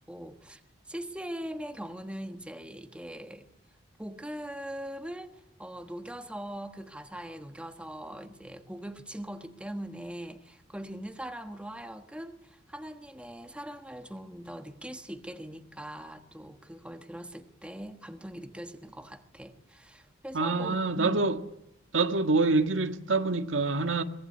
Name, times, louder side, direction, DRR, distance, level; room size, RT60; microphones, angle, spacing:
voice 1, 0.1-0.6 0.9-3.5 4.0-21.2, right 1 dB, 5° right, 1.4 m, -41 dB
voice 2, 20.3-21.4 21.9-24.0, right 3 dB, 90° right, 1.7 m, -26 dB
23.5 x 20.0 x 9.6 m
head